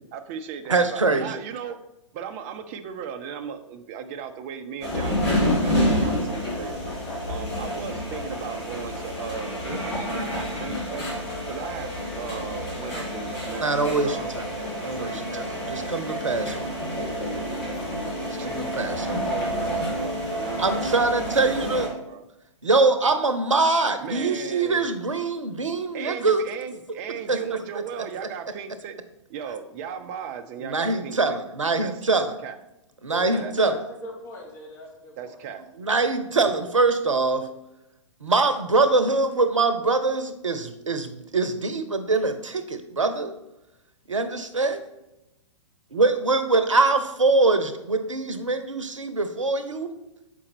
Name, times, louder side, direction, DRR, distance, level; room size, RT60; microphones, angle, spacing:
voice 1, 0.0-1.8 2.1-6.8 7.2-11.1 11.5-14.4 14.9-15.6 18.4-18.5 19.0-22.3 24.0-25.0 25.9-29.0 29.3-31.4 31.8-32.6 33.3-33.8 35.2-35.6 38.9-39.0, right 7 dB, 30° right, 8 dB, 0.5 m, -37 dB
voice 2, 0.7-1.3 13.6-14.4 14.8-15.2 15.7-17.0 18.4-19.1 20.6-21.9 22.6-26.4 27.3-27.4 27.7-27.8 30.6-32.3 33.0-33.7 35.8-37.5 38.2-43.3 44.1-44.8 45.9-49.9, right 3 dB, 75° right, 9 dB, 0.8 m, -23 dB
sound 1, 4.8-21.9, equal, 55° left, 2.3 m, -28 dB
voice 3, 33.1-35.4, equal, 20° left, -1 dB, 1.3 m, -39 dB
6.9 x 5.0 x 3.4 m, 0.92 s
figure-of-eight pair, 115°, 16 cm